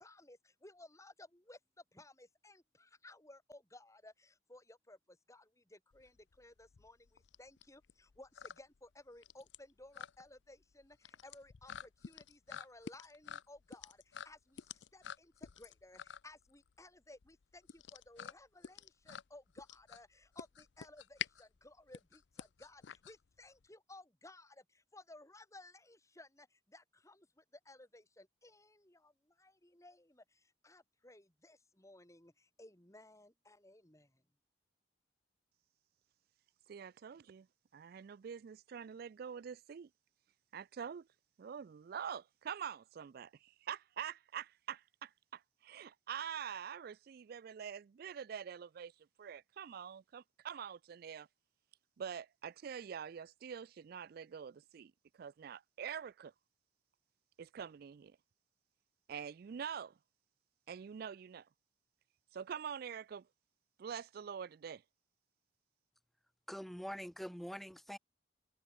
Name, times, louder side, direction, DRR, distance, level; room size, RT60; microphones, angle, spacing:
voice 1, 0.0-1.6 1.9-34.2, left 2 dB, 15° left, 4.1 m, -58 dB
sound 1, 5.9-23.7, left 8 dB, 75° left, 0.5 m, -49 dB
voice 2, 36.7-37.5 37.7-39.9 40.5-41.0 41.4-48.9 49.2-51.3 52.0-54.9 55.2-56.3 57.4-58.2 59.1-59.9 60.7-61.4 62.3-63.2 63.8-64.8, right 7 dB, 55° right, 0.3 m, -45 dB
voice 3, 66.5-68.0, equal, ahead, 0.7 m, -44 dB
open air
head